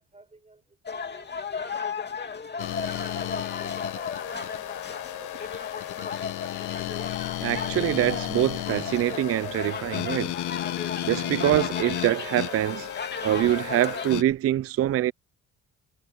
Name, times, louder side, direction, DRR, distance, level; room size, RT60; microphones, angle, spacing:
voice 1, 0.0-1.9 2.9-3.1 3.5-4.3 4.9-6.3, right 3 dB, 20° right, 7.3 m, -55 dB
sound 1, 0.9-14.2, left 5 dB, 35° left, 2.7 m, -35 dB
sound 2, 2.6-14.2, left 14 dB, 80° left, 1.2 m, -34 dB
voice 2, 7.4-10.3 11.1-12.9 13.2-15.1, right 13 dB, 50° right, 0.4 m, -24 dB
cardioid pair, 90°, 30 cm